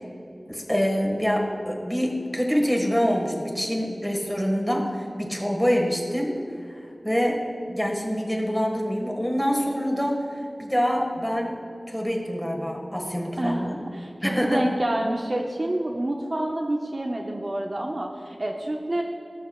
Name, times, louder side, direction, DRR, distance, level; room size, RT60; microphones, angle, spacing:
voice 1, 0.5-6.3 7.0-7.4 7.7-10.3 10.6-11.6 11.9-13.8 14.2-14.6, equal, 5° left, 0 dB, 1.6 m, -25 dB
voice 2, 13.4-19.0, right 1 dB, 50° right, 1 dB, 0.6 m, -28 dB
18.5 x 6.4 x 2.4 m, 2.7 s
wide cardioid pair, 60°, 0 cm